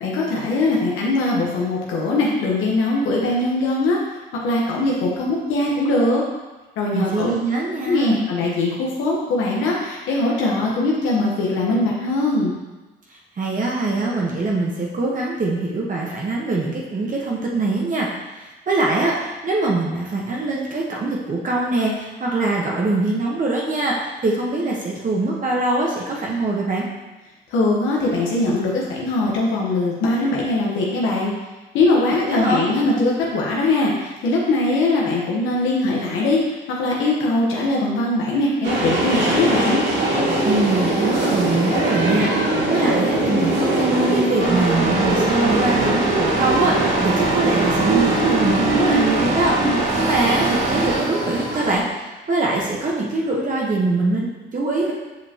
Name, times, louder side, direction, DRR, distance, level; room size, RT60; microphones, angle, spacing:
voice 1, 0.0-4.0 4.4-6.2 6.8-7.3 7.8-12.6 27.5-31.3 31.7-36.4 36.7-39.8, left 2 dB, 90° left, -3 dB, 1.1 m, -21 dB
voice 2, 6.9-8.2 13.1-18.1 18.3-26.8 32.2-32.6 40.4-42.3 42.7-54.9, right 2 dB, 40° right, -3 dB, 1.1 m, -23 dB
sound 1, 38.6-51.7, right 2 dB, 60° right, 1.8 m, -21 dB
sound 2, 44.4-51.0, right 2 dB, 80° right, 1.9 m, -24 dB
7.4 x 5.2 x 2.9 m, 1.2 s
cardioid pair, 90°, 20 cm